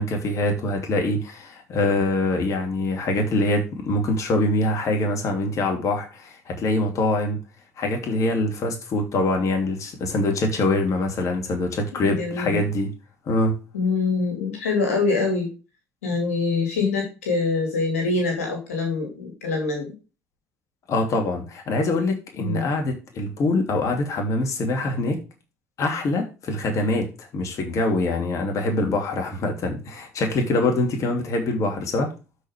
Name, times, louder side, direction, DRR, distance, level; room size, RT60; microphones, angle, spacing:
voice 1, 0.0-7.4 7.8-12.9 13.3-13.5 20.9-25.2 25.8-32.1, left 2 dB, 45° left, 3 dB, 3.0 m, -24 dB
voice 2, 12.2-12.6 13.7-15.5 16.0-19.9 22.4-22.6, left 4 dB, 75° left, 2 dB, 2.6 m, -24 dB
12.5 x 5.0 x 3.6 m, 0.30 s
figure-of-eight pair, 60°, 8 cm